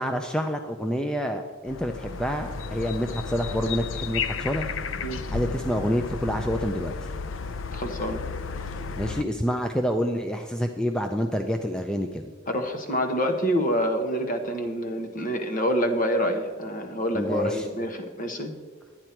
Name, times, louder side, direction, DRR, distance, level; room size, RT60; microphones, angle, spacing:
voice 1, 0.0-4.7 5.3-7.1 9.0-12.2 17.1-17.7, equal, 5° left, 4 dB, 0.4 m, -28 dB
sound 1, 1.7-9.2, left 5 dB, 70° left, 0.5 m, -33 dB
voice 2, 7.7-8.2 12.5-18.5, equal, 40° left, 5 dB, 1.1 m, -27 dB
11.0 x 9.8 x 4.5 m, 1.5 s
head